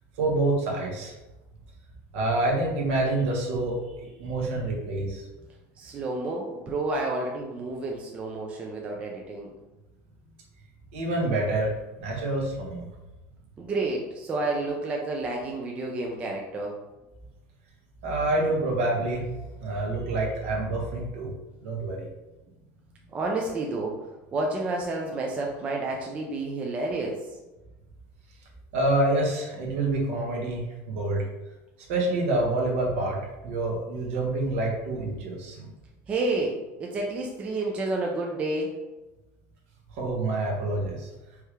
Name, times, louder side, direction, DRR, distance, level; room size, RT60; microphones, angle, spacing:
voice 1, 0.2-1.2 2.1-5.3 10.9-12.9 18.0-19.3 19.6-21.3 21.6-22.1 28.7-31.2 31.9-33.2 33.4-35.7 39.9-41.1, right 2 dB, 65° right, -1 dB, 1.4 m, -27 dB
voice 2, 5.8-9.5 13.6-16.7 23.1-24.0 24.3-27.2 36.1-38.7, right 2 dB, 15° right, -1 dB, 0.4 m, -30 dB
4.7 x 3.3 x 3.3 m, 1.1 s
cardioid pair, 175°, 7 cm